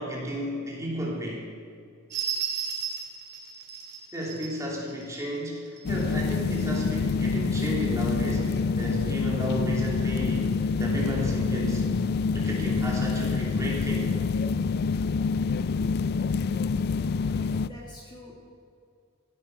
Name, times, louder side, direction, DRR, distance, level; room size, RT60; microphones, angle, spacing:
voice 1, 0.0-1.5 4.1-14.1, equal, 15° right, -4 dB, 3.1 m, -33 dB
sound 1, 2.1-6.0 6.6-6.7, right 7 dB, 55° right, 2.4 m, -34 dB
sound 2, 5.9-17.7, left 4 dB, 50° left, 0.3 m, -27 dB
voice 2, 17.3-18.3, left 1 dB, 20° left, -2 dB, 1.7 m, -46 dB
16.0 x 8.7 x 6.4 m, 2.4 s
head